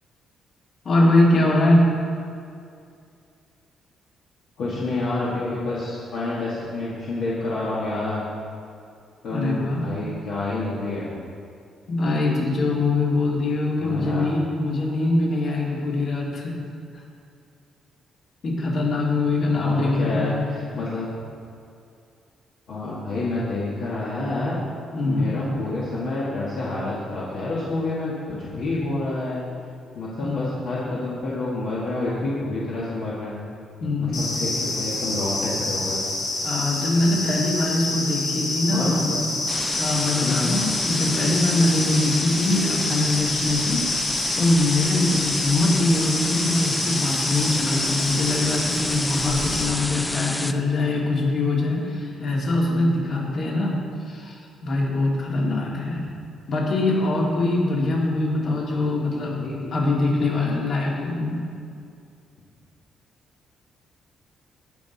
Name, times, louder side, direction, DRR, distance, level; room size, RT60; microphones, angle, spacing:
voice 1, 0.8-1.9 9.3-9.9 11.9-16.6 18.4-20.4 24.9-25.3 30.2-30.5 33.8-34.2 36.4-39.1 39.7-56.1 56.5-59.4 59.7-61.4, left 2 dB, 50° left, -4 dB, 2.5 m, -23 dB
voice 2, 4.6-8.2 9.2-11.1 13.8-14.3 19.5-21.1 22.7-24.6 25.1-29.4 30.0-33.4 34.0-36.0 38.7-39.3 40.2-40.5 59.1-59.8, left 2 dB, 65° left, -7 dB, 1.8 m, -28 dB
sound 1, 34.1-49.6, left 2 dB, 90° left, 2.8 m, -28 dB
sound 2, 39.5-50.5, left 1 dB, 10° left, 0.3 m, -29 dB
16.5 x 6.1 x 4.2 m, 2.4 s
cardioid pair, 130°, 0 cm